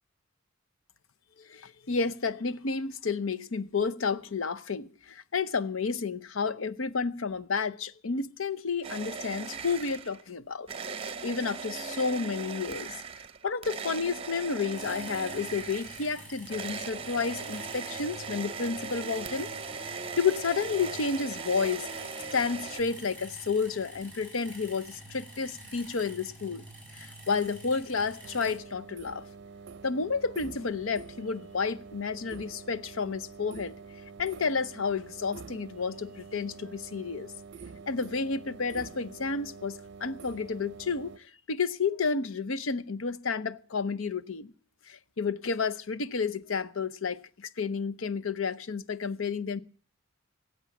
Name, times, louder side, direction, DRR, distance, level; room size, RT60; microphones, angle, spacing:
voice 1, 1.4-10.7 11.2-12.9 13.4-19.5 19.8-21.9 22.3-26.6 26.9-29.2 29.8-33.7 34.2-37.3 37.9-41.1 41.5-44.5 44.9-49.6, left 5 dB, 75° left, 0.7 m, -31 dB
sound 1, 8.8-10.3 10.7-22.8, right 5 dB, 30° right, 0.8 m, -39 dB
sound 2, 14.7-28.6, right 1 dB, 5° left, 7.1 m, -48 dB
sound 3, 28.2-41.2, right 4 dB, 60° right, 0.6 m, -47 dB
16.0 x 8.1 x 7.2 m
head